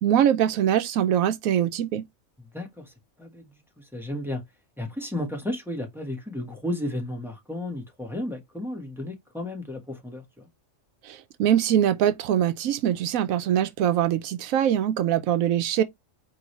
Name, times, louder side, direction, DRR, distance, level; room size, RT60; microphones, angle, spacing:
voice 1, 0.0-2.0 11.1-15.8, right 10 dB, 85° right, 1.0 m, -23 dB
voice 2, 2.4-2.9 3.2-4.4 4.8-10.5, left 1 dB, ahead, 1.1 m, -33 dB
4.8 x 3.1 x 3.1 m
omnidirectional pair, 1.4 m